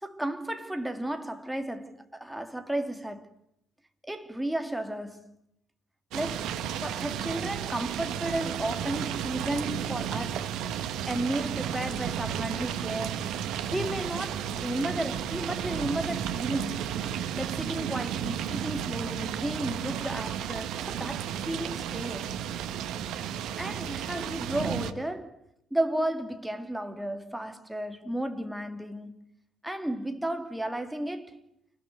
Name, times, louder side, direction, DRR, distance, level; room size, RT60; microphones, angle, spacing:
voice 1, 0.0-3.3 4.1-5.3 6.1-10.5 11.1-13.3 13.7-17.0 17.4-22.4 23.6-25.4 25.7-29.3 29.6-31.4, right 1 dB, 5° right, 2.8 m, -33 dB
sound 1, 6.1-24.9, right 9 dB, 60° right, 1.7 m, -33 dB
29.0 x 19.5 x 9.7 m
figure-of-eight pair, 50°, 0 cm